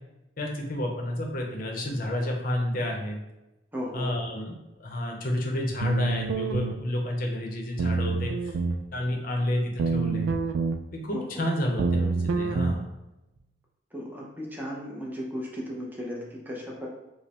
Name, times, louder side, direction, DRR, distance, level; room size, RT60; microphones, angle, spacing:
voice 1, 0.4-3.2 3.9-8.5 8.9-10.3 10.9-12.8, left 1 dB, 50° left, 0 dB, 0.7 m, -30 dB
voice 2, 3.7-4.3 11.1-11.4 13.9-16.9, equal, 10° right, -3 dB, 0.6 m, -36 dB
sound 1, 5.8-6.8 7.8-8.8 9.8-10.8 11.8-12.8, right 4 dB, 80° right, 0.3 m, -27 dB
5.1 x 2.1 x 2.9 m, 0.97 s
head